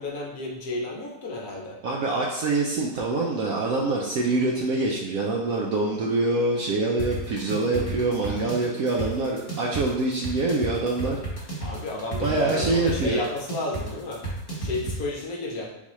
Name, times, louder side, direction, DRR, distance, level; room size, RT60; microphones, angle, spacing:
voice 1, 0.0-1.8 11.6-14.2 14.6-15.7, left 2 dB, 65° left, -1 dB, 1.0 m, -32 dB
voice 2, 1.8-11.2 12.2-13.2, right 2 dB, 70° right, -1 dB, 0.8 m, -25 dB
sound 1, 7.0-15.0, right 2 dB, 35° left, 1.3 m, -33 dB
4.0 x 3.9 x 3.0 m, 0.97 s
omnidirectional pair, 1.9 m